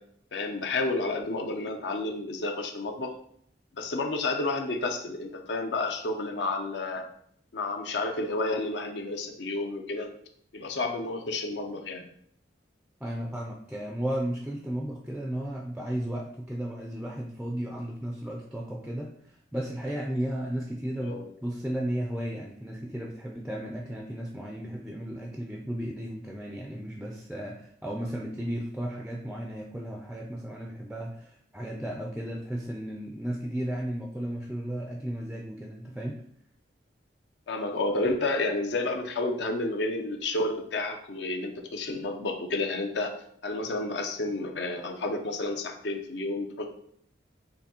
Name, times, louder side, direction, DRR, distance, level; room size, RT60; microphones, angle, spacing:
voice 1, 0.3-3.1 3.7-7.1 7.5-10.1 10.5-12.0 21.0-21.3 37.5-43.1 43.4-46.7, left 2 dB, 75° left, 4 dB, 0.5 m, -30 dB
voice 2, 13.0-36.2, right 1 dB, 5° right, 0 dB, 0.3 m, -34 dB
6.6 x 2.7 x 2.8 m, 0.66 s
head